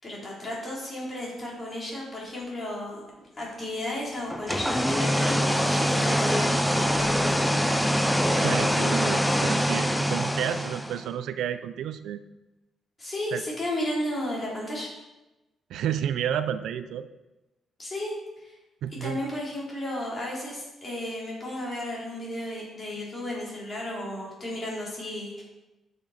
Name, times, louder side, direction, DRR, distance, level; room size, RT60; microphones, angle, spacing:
voice 1, 0.0-3.0 3.4-7.4 13.0-14.9 17.8-18.5 19.0-25.4, left 1 dB, 25° left, -4 dB, 3.5 m, -33 dB
sound 1, 4.3-11.1, equal, 5° left, 0.5 m, -24 dB
voice 2, 8.3-12.2 13.3-13.4 15.7-17.1 18.8-19.2, right 9 dB, 85° right, 11 dB, 0.5 m, -31 dB
12.0 x 6.8 x 4.3 m, 1.0 s
cardioid pair, 155°, 0 cm